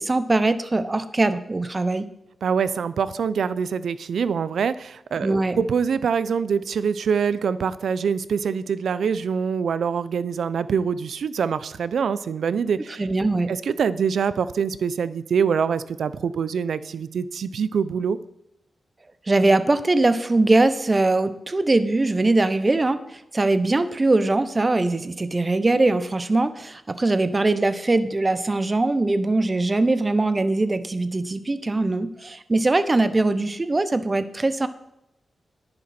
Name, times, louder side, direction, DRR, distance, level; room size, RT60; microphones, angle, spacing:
voice 1, 0.0-2.1 5.2-5.6 13.0-13.5 19.3-34.7, right 2 dB, 30° right, 12 dB, 0.9 m, -21 dB
voice 2, 2.4-13.1 13.5-18.2, right 6 dB, 85° right, 16 dB, 0.5 m, -24 dB
10.5 x 9.9 x 4.4 m, 0.83 s
cardioid pair, 75°, 0 cm